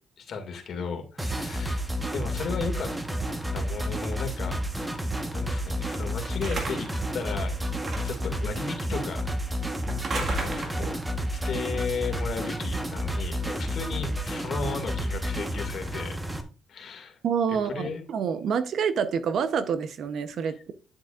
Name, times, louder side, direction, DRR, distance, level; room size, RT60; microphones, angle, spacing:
voice 1, 0.2-1.8 2.1-2.9 3.5-4.6 5.3-6.9 7.1-9.3 10.1-10.9 11.3-16.2 16.7-17.2 17.6-18.0 20.4-20.5, left 5 dB, 60° left, 4 dB, 2.1 m, -35 dB
sound 1, 1.2-16.4, equal, 10° right, 1.1 m, -30 dB
sound 2, 6.4-7.0 7.8-8.3 9.9-11.0, right 3 dB, 50° right, 1.7 m, -34 dB
voice 2, 17.2-20.7, right 7 dB, 65° right, 11 dB, 0.8 m, -27 dB
9.2 x 7.8 x 2.4 m, 0.37 s
cardioid pair, 90°, 0 cm